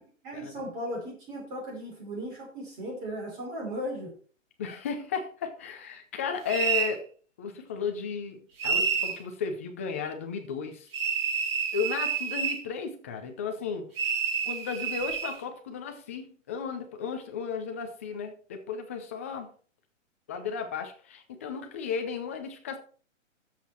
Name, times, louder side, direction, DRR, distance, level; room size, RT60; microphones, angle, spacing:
voice 1, 0.2-4.1, equal, 25° right, -1 dB, 5.2 m, -36 dB
voice 2, 4.6-7.0 7.4-10.9 11.7-13.9 14.4-19.5 20.3-22.8, left 6 dB, 10° left, 5 dB, 0.5 m, -34 dB
sound 1, 6.5-7.0 8.6-9.2 10.9-12.6 14.0-15.4, right 6 dB, 50° right, 3.5 m, -28 dB
11.0 x 7.6 x 4.5 m, 0.42 s
hypercardioid pair, 160°, 38 cm